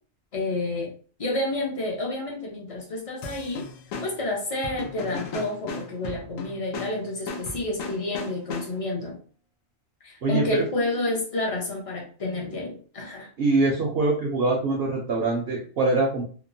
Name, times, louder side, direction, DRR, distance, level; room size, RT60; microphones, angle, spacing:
voice 1, 0.3-0.9 1.2-3.6 4.0-9.2 10.0-13.3, left 2 dB, 35° left, -1 dB, 0.6 m, -29 dB
sound 1, 3.2-9.0, left 3 dB, 85° left, 1.0 m, -37 dB
voice 2, 10.2-10.6 13.4-16.2, right 3 dB, 60° right, -1 dB, 0.7 m, -23 dB
2.9 x 2.0 x 2.6 m, 0.41 s
omnidirectional pair, 1.3 m